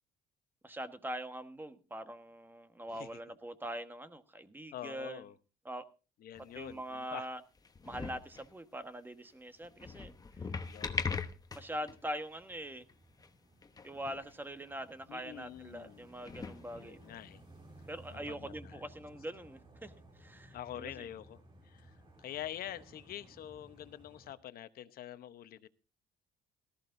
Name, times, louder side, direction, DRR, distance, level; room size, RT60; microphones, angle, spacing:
voice 1, 0.6-5.2 5.6-5.8 6.5-7.4 7.8-10.1 11.5-12.8 13.8-17.0 17.9-19.9 20.2-20.9, right 1 dB, 10° right, 9 dB, 1.3 m, -43 dB
voice 2, 4.7-5.4 6.2-7.3 10.7-11.3 15.1-16.1 16.8-17.4 18.3-18.9 20.5-25.7, left 12 dB, 60° left, 12 dB, 0.9 m, -46 dB
sound 1, 6.4-7.0 7.6-8.5 9.6-12.0 12.3-12.4 12.9-13.0 13.2-13.3 13.6-14.3 14.6-14.7 15.6-15.7 16.1-17.3 18.1-18.2, left 4 dB, 20° left, 1.0 m, -41 dB
sound 2, 12.4-24.3, equal, 30° right, 3.0 m, -58 dB
18.0 x 14.0 x 2.6 m, 0.32 s
cardioid pair, 110°, 17 cm